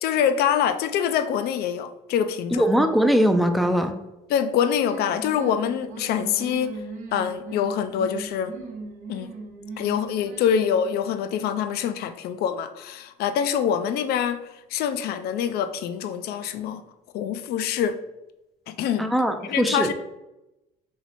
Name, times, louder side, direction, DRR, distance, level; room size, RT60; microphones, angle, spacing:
voice 1, 0.0-2.7 4.3-6.8 7.1-8.6 9.1-9.3 9.8-14.4 14.7-16.8 17.1-18.0 18.7-19.1 19.5-19.9, left 8 dB, 70° left, 10 dB, 0.4 m, -25 dB
voice 2, 2.5-4.0 19.0-19.9, equal, ahead, 6 dB, 0.4 m, -21 dB
sound 1, 4.8-11.2, right 4 dB, 50° right, 0.8 m, -39 dB
3.1 x 3.1 x 4.0 m, 0.96 s
cardioid pair, 110°, 17 cm